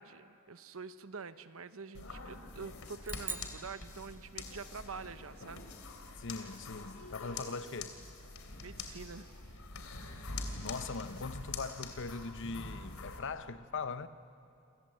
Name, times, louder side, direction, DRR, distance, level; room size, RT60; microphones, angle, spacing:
voice 1, 0.0-5.7 8.6-9.5, right 5 dB, 70° right, 1.0 m, -46 dB
sound 1, 1.9-13.2, left 3 dB, 80° left, 2.9 m, -45 dB
sound 2, 3.0-4.7, right 4 dB, 10° right, 0.8 m, -44 dB
voice 2, 6.2-8.0 10.5-14.1, left 4 dB, 60° left, 0.9 m, -41 dB
28.0 x 26.0 x 7.8 m
head